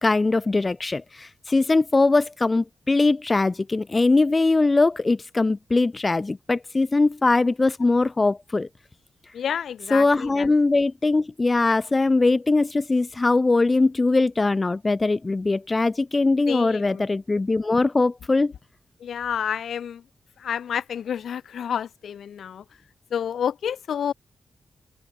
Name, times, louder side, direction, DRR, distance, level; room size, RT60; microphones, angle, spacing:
voice 1, 0.0-8.7 9.9-18.5, left 3 dB, 25° left, 0.5 m, -21 dB
voice 2, 9.3-10.5 16.5-17.0 19.0-20.0 20.4-22.6 23.1-24.1, left 8 dB, 80° left, 1.0 m, -29 dB
cardioid pair, 95°, 0 cm